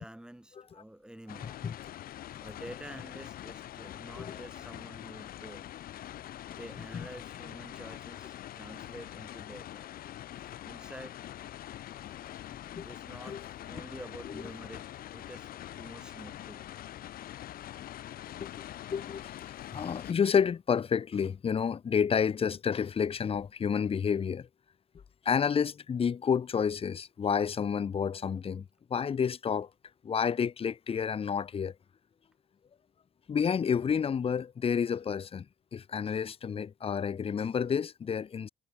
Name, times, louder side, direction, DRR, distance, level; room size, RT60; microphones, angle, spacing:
voice 1, 0.0-1.5 2.4-9.9 10.4-11.2 12.8-14.9 15.1-16.7, right 1 dB, 5° right, 5.2 m, -48 dB
sound 1, 1.3-20.1, left 12 dB, 60° left, 1.1 m, -44 dB
voice 2, 18.9-19.3 19.7-24.5 25.2-29.7 30.0-31.8 33.3-35.4 35.7-38.5, left 7 dB, 35° left, 1.3 m, -30 dB
cardioid pair, 110°, 17 cm